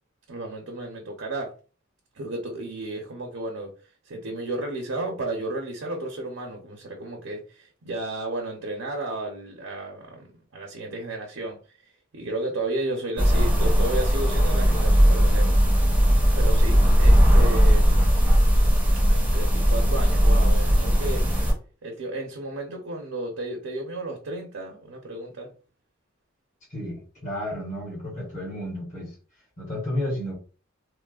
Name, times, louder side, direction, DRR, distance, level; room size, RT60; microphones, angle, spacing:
voice 1, 0.3-1.5 2.1-3.7 4.0-10.3 10.5-11.6 12.1-15.6 16.3-18.2 19.1-21.2 21.8-25.5, right 2 dB, 85° right, 0.6 m, -33 dB
sound 1, 13.2-21.5, equal, 10° right, 0.6 m, -18 dB
voice 2, 26.7-29.1 29.6-30.3, left 1 dB, 40° left, 1.2 m, -32 dB
3.1 x 2.1 x 2.3 m
head